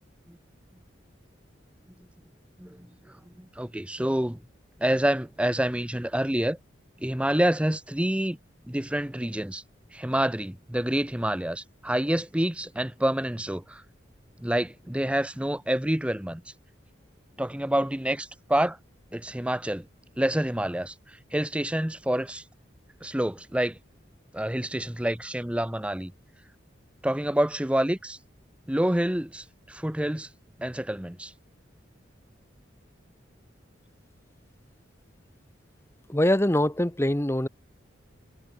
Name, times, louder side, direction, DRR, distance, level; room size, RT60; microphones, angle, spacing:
voice 1, 3.2-4.4 4.8-6.6 7.0-8.4 8.7-9.6 9.9-13.8 14.4-16.4 17.4-18.8 19.1-19.9 20.2-22.4 23.0-23.8 24.3-26.1 27.0-28.2 28.7-30.3 30.6-31.3, right 1 dB, 5° right, 0.7 m, -27 dB
voice 2, 36.1-37.5, left 1 dB, 15° left, 1.1 m, -23 dB
head